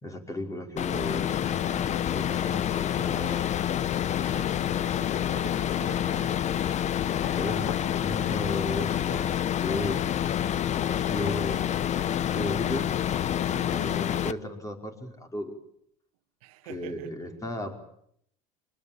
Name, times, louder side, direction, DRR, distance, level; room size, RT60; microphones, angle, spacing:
voice 1, 0.0-3.4 7.3-9.3 9.6-10.1 10.8-11.7 12.2-12.9 13.4-15.6 16.6-17.7, left 1 dB, 15° left, 5.2 m, -35 dB
sound 1, 0.8-14.3, left 10 dB, 40° left, 1.0 m, -28 dB
voice 2, 4.2-4.6 4.9-6.5 13.5-13.9 16.4-17.2, right 14 dB, 80° right, 1.7 m, -46 dB
sound 2, 7.2-8.0 10.8-11.5 13.1-13.2, left 9 dB, 80° left, 2.2 m, -39 dB
26.0 x 20.0 x 8.9 m
supercardioid pair, 95°, 18 cm